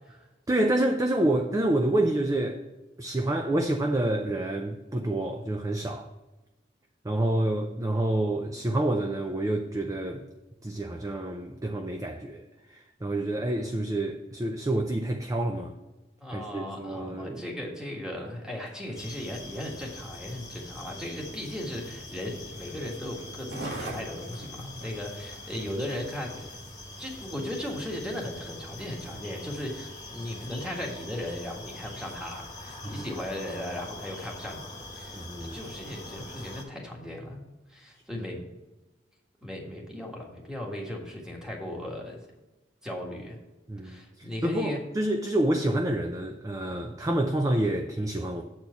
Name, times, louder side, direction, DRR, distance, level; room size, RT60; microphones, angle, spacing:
voice 1, 0.5-2.6 3.0-6.1 7.0-10.2 10.6-15.7 16.3-17.4 32.8-33.1 35.1-35.6 38.2-38.3 43.7-48.4, right 1 dB, 20° right, 4 dB, 0.5 m, -28 dB
voice 2, 16.2-26.5 27.0-34.6 34.9-37.4 37.7-38.4 39.4-42.2 42.8-43.4 43.8-44.8, left 1 dB, 5° right, 0 dB, 1.6 m, -37 dB
Skateboard, 18.6-27.4 28.0-28.1, right 1 dB, 70° right, 1.7 m, -45 dB
sound 1, 19.0-36.6, left 2 dB, 20° left, 1.4 m, -43 dB
7.9 x 4.4 x 7.0 m, 1.1 s
head